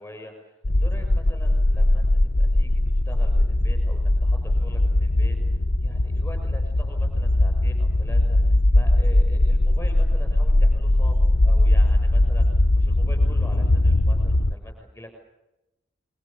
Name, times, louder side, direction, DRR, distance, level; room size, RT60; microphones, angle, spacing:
voice 1, 0.0-15.1, left 1 dB, 10° left, 5 dB, 6.8 m, -44 dB
sound 1, 0.6-14.5, left 1 dB, 60° left, 1.0 m, -20 dB
26.0 x 23.5 x 7.1 m, 0.95 s
head